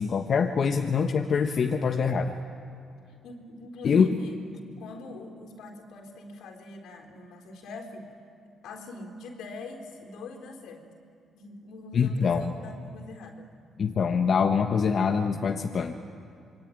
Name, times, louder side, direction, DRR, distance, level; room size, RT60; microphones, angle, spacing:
voice 1, 0.0-2.4 3.8-4.1 11.9-12.5 13.8-15.9, left 6 dB, 50° left, 4 dB, 1.3 m, -24 dB
voice 2, 3.1-4.4 4.8-8.1 8.6-10.8 11.3-13.5, left 2 dB, 80° left, 3 dB, 4.1 m, -43 dB
26.0 x 24.0 x 9.2 m, 2.4 s
cardioid pair, 90°, 0 cm